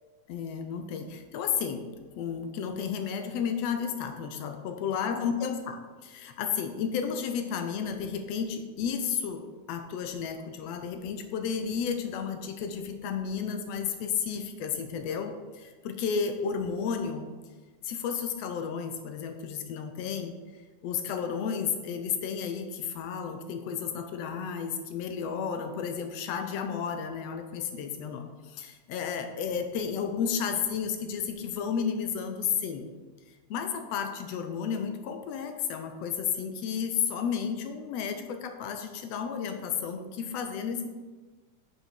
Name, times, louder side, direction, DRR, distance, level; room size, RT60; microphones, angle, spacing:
voice 1, 0.3-1.8 2.2-17.3 17.8-32.9 33.5-40.9, left 7 dB, 75° left, 6 dB, 1.6 m, -32 dB
6.5 x 5.6 x 6.1 m, 1.3 s
omnidirectional pair, 3.4 m